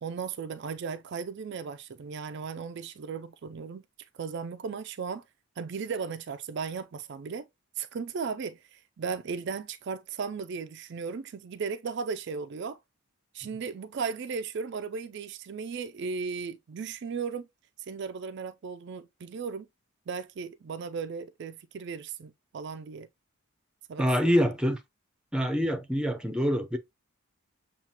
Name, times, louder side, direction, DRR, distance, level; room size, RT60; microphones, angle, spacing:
voice 1, 0.0-3.8 4.1-5.2 5.6-7.5 7.8-12.8 13.3-17.5 17.9-19.7 20.1-23.1 23.9-24.5, right 5 dB, 55° right, 0.4 m, -36 dB
voice 2, 24.0-24.8 25.3-26.8, equal, 5° right, 0.6 m, -25 dB
7.2 x 2.4 x 2.8 m
head